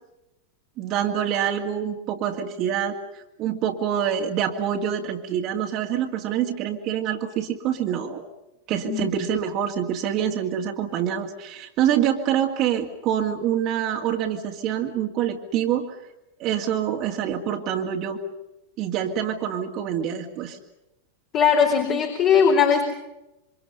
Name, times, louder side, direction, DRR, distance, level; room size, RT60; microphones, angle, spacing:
voice 1, 0.8-3.0 3.4-8.3 8.7-16.0 16.4-18.2 18.8-20.6, right 9 dB, 40° right, 2 dB, 2.4 m, -26 dB
voice 2, 21.3-22.8, left 7 dB, 35° left, 3 dB, 4.0 m, -19 dB
28.0 x 25.5 x 5.5 m, 0.95 s
figure-of-eight pair, 90°, 0 cm